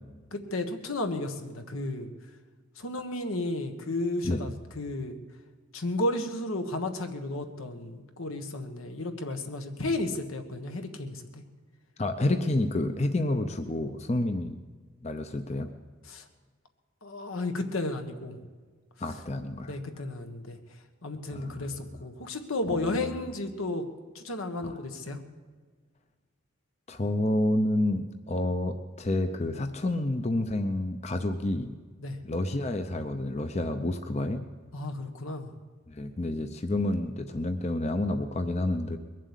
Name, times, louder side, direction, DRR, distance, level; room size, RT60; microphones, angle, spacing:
voice 1, 0.3-2.1 2.7-5.2 5.7-11.4 16.0-16.2 17.0-18.4 19.7-20.6 21.0-23.9 24.1-25.2 32.0-32.2 34.7-35.5, left 2 dB, 80° left, 6 dB, 1.4 m, -33 dB
voice 2, 12.0-14.6 15.0-15.7 19.0-19.8 21.3-21.6 22.7-23.1 24.6-24.8 26.9-31.8 32.2-34.4 35.9-39.0, left 1 dB, 30° left, 7 dB, 0.6 m, -29 dB
21.5 x 7.6 x 8.3 m, 1.5 s
head